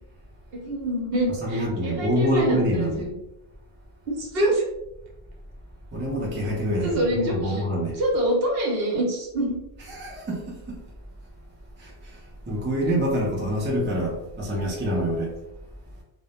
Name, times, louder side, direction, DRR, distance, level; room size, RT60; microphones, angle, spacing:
voice 1, 0.5-3.1 4.1-4.6 6.8-7.6 8.0-9.6 14.5-14.6, right 1 dB, 70° right, -1 dB, 0.9 m, -25 dB
voice 2, 1.4-3.1 5.9-8.0 9.9-10.8 11.8-15.4, equal, 20° right, -3 dB, 0.3 m, -26 dB
2.1 x 2.1 x 2.8 m, 0.90 s
omnidirectional pair, 1.1 m